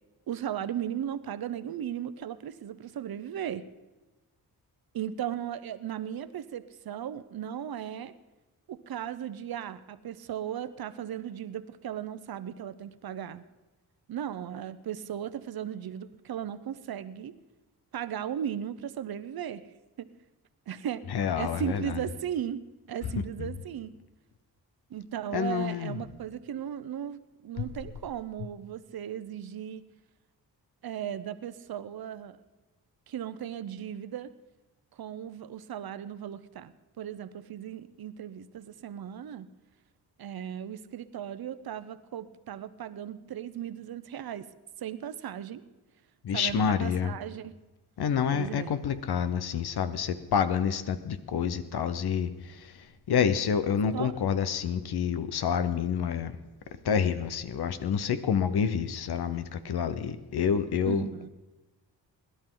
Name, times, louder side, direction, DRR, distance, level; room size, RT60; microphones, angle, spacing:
voice 1, 0.3-3.7 4.9-8.1 8.7-13.4 14.1-17.3 17.9-19.6 20.0-20.1 20.7-21.0 21.4-22.6 22.9-23.9 24.9-29.9 30.8-32.4 33.1-34.3 35.0-39.5 40.2-44.5 44.8-45.6 46.3-47.5 48.3-48.7 53.9-54.1 60.9-61.3, right 10 dB, 65° right, 13 dB, 0.8 m, -36 dB
voice 2, 21.1-22.0 23.0-23.5 25.3-26.0 27.6-27.7 46.2-47.2 48.0-56.4 56.7-61.1, left 7 dB, 70° left, 12 dB, 1.0 m, -28 dB
21.5 x 11.5 x 3.9 m, 1.1 s
cardioid pair, 80°, 40 cm